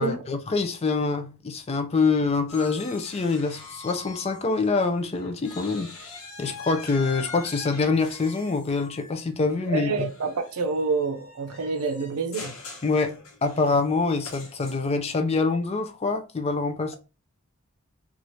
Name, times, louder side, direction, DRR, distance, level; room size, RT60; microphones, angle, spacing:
voice 1, 0.0-10.1 12.8-17.0, left 4 dB, 25° left, 0.3 m, -25 dB
sound 1, 2.5-4.9 5.1-15.1, left 3 dB, 75° left, 0.8 m, -43 dB
voice 2, 9.6-12.5, right 4 dB, 85° right, 0.5 m, -27 dB
2.8 x 2.4 x 2.9 m
head